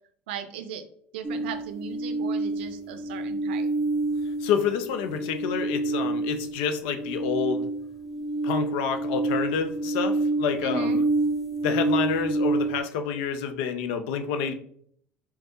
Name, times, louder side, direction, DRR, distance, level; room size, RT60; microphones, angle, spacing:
voice 1, 0.3-0.9 1.1-3.7 10.6-11.1, right 6 dB, 85° right, 10 dB, 0.4 m, -37 dB
sound 1, 1.2-12.8, right 2 dB, 5° right, 0.6 m, -28 dB
voice 2, 4.4-7.7 8.4-11.0 11.6-14.5, left 7 dB, 75° left, 8 dB, 0.5 m, -28 dB
3.5 x 3.1 x 2.8 m, 0.63 s
hypercardioid pair, 70°, 6 cm